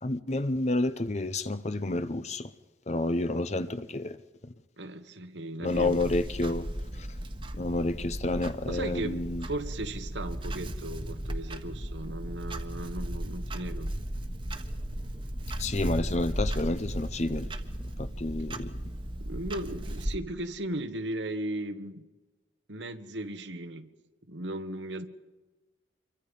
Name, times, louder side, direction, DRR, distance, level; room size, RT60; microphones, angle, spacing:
voice 1, 0.0-2.5 2.9-4.2 4.4-4.5 5.6-6.7 6.9-7.1 7.5-9.5 15.6-17.5 18.0-18.7, left 2 dB, 40° left, 0.8 m, -30 dB
voice 2, 4.8-6.0 8.7-13.9 19.2-22.1 22.7-23.9 24.3-25.1, right 1 dB, 80° right, 1.6 m, -36 dB
Clock, 5.7-20.2, right 1 dB, 30° right, 1.4 m, -35 dB
27.0 x 23.5 x 5.5 m
head